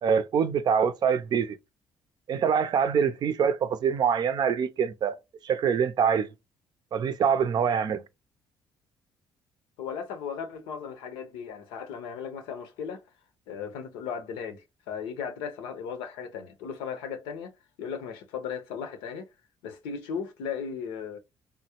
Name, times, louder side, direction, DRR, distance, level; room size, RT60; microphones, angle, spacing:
voice 1, 0.0-1.6 2.3-5.2 5.4-6.3 6.9-8.0, right 7 dB, 55° right, 0.5 m, -24 dB
voice 2, 9.8-13.0 13.5-17.5 17.8-19.3 19.6-21.2, left 7 dB, 85° left, 0.7 m, -36 dB
3.6 x 2.0 x 2.9 m
supercardioid pair, 75°, 9 cm